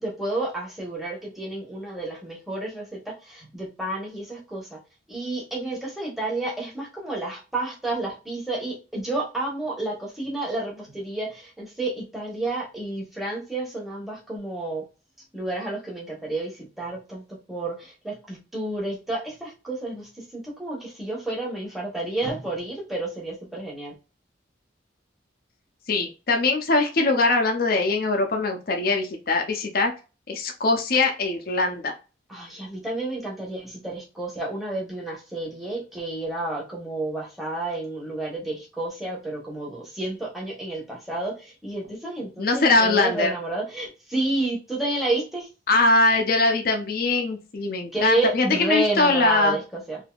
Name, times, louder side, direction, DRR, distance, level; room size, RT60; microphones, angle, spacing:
voice 1, 0.0-4.8 5.1-14.8 15.3-23.9 32.3-45.5 47.9-50.0, right 2 dB, ahead, -3 dB, 1.1 m, -30 dB
voice 2, 25.9-29.9 30.3-31.9 42.4-43.3 45.7-49.6, left 3 dB, 50° left, 3 dB, 0.5 m, -22 dB
3.5 x 2.7 x 2.3 m, 0.32 s
head